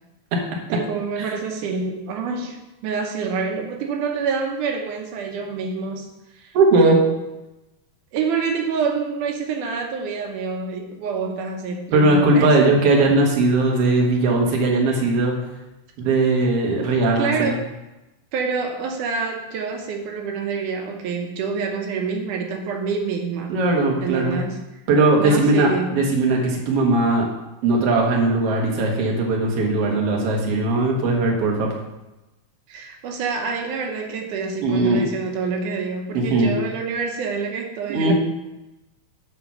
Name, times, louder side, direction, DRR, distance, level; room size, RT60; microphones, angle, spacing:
voice 1, 0.7-2.6 2.8-6.1 6.4-6.6 8.1-12.8 17.2-17.6 18.3-23.5 24.0-24.6 25.2-26.0 32.7-38.1, right 5 dB, 85° right, 2 dB, 2.4 m, -27 dB
voice 2, 6.5-7.0 11.9-15.3 16.0-17.6 23.5-24.4 24.9-27.2 27.6-31.7 34.6-35.0 36.1-36.5 37.9-38.1, right 2 dB, 55° right, -1 dB, 2.2 m, -19 dB
9.7 x 4.0 x 5.8 m, 1.0 s
omnidirectional pair, 3.5 m